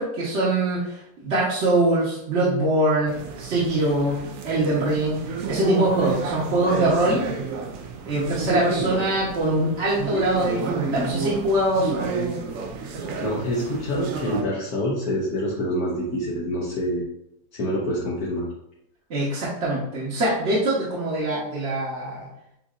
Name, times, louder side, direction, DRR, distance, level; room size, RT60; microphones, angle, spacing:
voice 1, 0.0-5.2 5.5-7.3 8.0-12.4 12.9-13.3 19.1-22.3, right 1 dB, 50° right, -8 dB, 1.3 m, -23 dB
sound 1, 3.1-14.4, right 5 dB, 65° right, 0.9 m, -31 dB
voice 2, 6.6-7.1 13.2-17.0 17.5-18.5, equal, 75° left, -6 dB, 1.4 m, -27 dB
7.2 x 2.6 x 2.4 m, 0.78 s
omnidirectional pair, 1.6 m